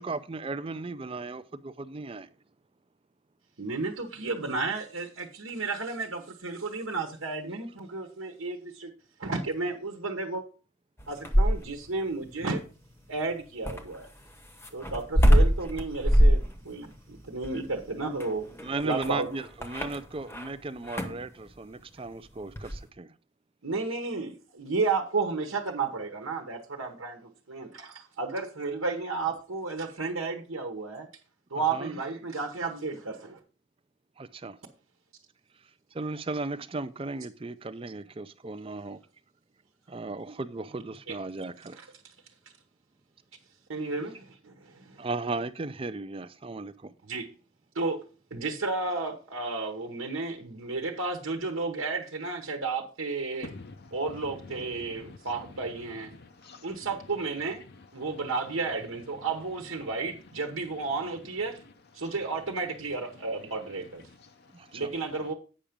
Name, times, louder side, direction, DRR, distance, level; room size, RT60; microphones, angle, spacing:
voice 1, 0.0-2.3 15.4-15.5 18.6-23.1 31.7-31.9 34.2-34.6 35.9-39.0 39.9-41.8 45.0-46.9 64.5-64.9, right 3 dB, 25° right, 0.4 m, -36 dB
voice 2, 3.6-8.9 9.2-10.4 11.1-12.6 13.1-14.1 14.7-18.5 18.8-19.3 23.6-31.1 31.5-33.4 41.1-41.2 41.8-42.1 43.7-45.0 47.0-47.3 47.7-48.0 48.3-53.5 53.9-56.1 56.6-57.6 57.9-61.6 61.9-64.1 64.7-65.3, right 3 dB, 75° right, 1.1 m, -32 dB
sound 1, 11.0-11.9 13.7-20.5 20.8-21.3 22.6-22.8, equal, 10° left, 0.9 m, -24 dB
voice 3, 53.4-54.0 54.4-55.2 56.1-56.9 64.2-64.6, left 3 dB, 50° left, 0.5 m, -46 dB
8.7 x 5.8 x 5.1 m
head